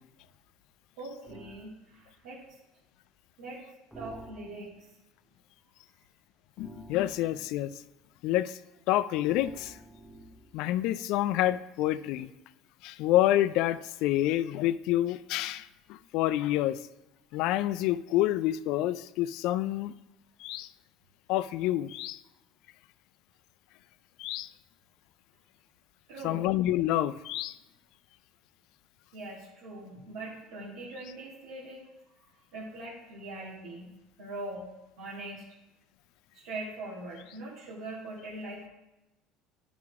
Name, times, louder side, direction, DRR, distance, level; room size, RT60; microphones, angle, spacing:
voice 1, 1.0-2.4 3.4-3.6 4.0-4.9 26.1-26.5 29.1-31.8 32.5-33.9 34.2-34.7 35.0-35.4 36.3-38.7, right 2 dB, 75° right, -7 dB, 2.3 m, -41 dB
sound 1, 1.2-1.7 3.9-4.8 6.6-7.7 9.2-10.6, right 2 dB, 5° right, 0.8 m, -50 dB
voice 2, 6.6-7.7 8.2-8.6 8.9-9.8 10.5-12.3 12.8-16.8 17.3-19.9 20.4-20.7 21.3-22.2 24.2-24.5 26.2-27.6, left 14 dB, 70° left, 15 dB, 0.4 m, -28 dB
10.5 x 5.9 x 3.6 m, 0.97 s
supercardioid pair, 95°, 0 cm